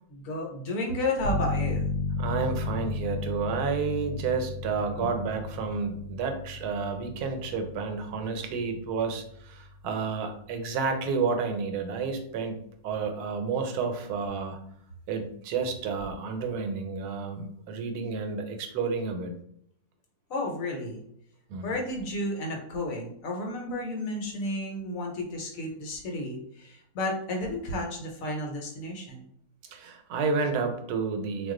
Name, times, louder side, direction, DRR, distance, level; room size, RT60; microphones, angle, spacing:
voice 1, 0.1-1.9 20.3-21.0 21.6-29.2, left 1 dB, 65° left, 1 dB, 1.1 m, -32 dB
sound 1, 1.2-11.8, left 3 dB, 80° left, 0.5 m, -35 dB
voice 2, 2.2-14.6 15.1-19.3 21.5-21.7 29.7-31.5, right 5 dB, 85° right, 5 dB, 1.1 m, -30 dB
2.4 x 2.3 x 3.6 m, 0.70 s
omnidirectional pair, 1.6 m